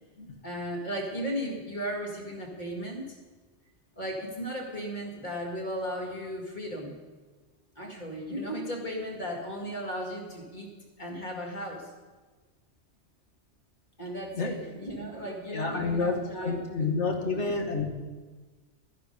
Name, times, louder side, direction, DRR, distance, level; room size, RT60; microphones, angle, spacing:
voice 1, 0.4-3.0 4.0-7.0 7.8-10.7 11.0-11.9 14.0-16.9 17.2-17.5, equal, 40° left, -1 dB, 2.2 m, -36 dB
voice 2, 15.5-17.9, left 4 dB, 70° left, 3 dB, 1.7 m, -29 dB
12.0 x 9.8 x 5.4 m, 1.3 s
omnidirectional pair, 1.2 m